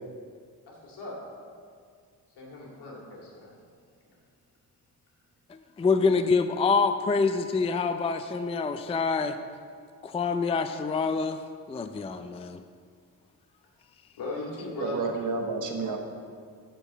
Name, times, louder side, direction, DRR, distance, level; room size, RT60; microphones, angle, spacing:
voice 1, 0.7-1.1 2.4-3.5 14.2-15.0 15.8-16.0, left 2 dB, 90° left, -3 dB, 2.3 m, -38 dB
voice 2, 5.8-9.4 10.0-11.4 11.7-12.6, left 4 dB, 15° left, 9 dB, 0.4 m, -26 dB
voice 3, 14.8-16.0, right 4 dB, 50° right, 2 dB, 1.3 m, -30 dB
7.7 x 4.5 x 7.0 m, 2.1 s
cardioid pair, 75°, 39 cm